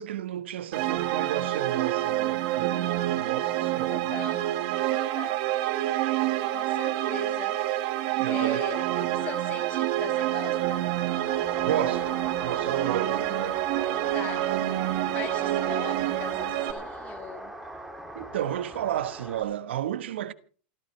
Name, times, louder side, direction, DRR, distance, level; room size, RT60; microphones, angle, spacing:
voice 1, 0.0-4.1 8.2-8.7 11.6-12.1 12.4-13.7 18.1-20.3, right 11 dB, 80° right, 1.3 m, -32 dB
sound 1, 0.7-16.7, right 14 dB, 40° right, 1.8 m, -27 dB
voice 2, 3.9-4.5 4.9-5.4 6.5-7.6 8.3-10.9 14.1-14.5 15.1-17.5, left 9 dB, 25° left, 2.0 m, -40 dB
sound 2, 10.5-19.4, right 1 dB, 5° right, 2.5 m, -40 dB
28.0 x 14.0 x 3.3 m
supercardioid pair, 165°, 6 cm